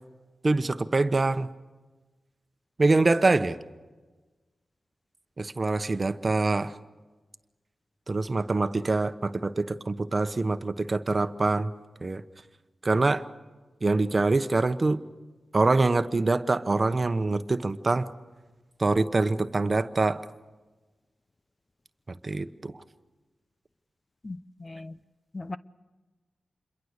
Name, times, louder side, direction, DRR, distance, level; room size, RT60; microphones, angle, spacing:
voice 1, 0.4-1.5 2.8-3.6 5.4-6.7 8.1-11.7 12.0-12.2 12.8-13.2 13.8-15.0 15.5-18.1 18.8-20.2 22.1-22.7, right 3 dB, 45° right, 1.0 m, -25 dB
voice 2, 24.2-25.0 25.3-25.6, left 2 dB, 40° left, 0.7 m, -38 dB
27.5 x 22.5 x 6.7 m
cardioid pair, 50°, 0 cm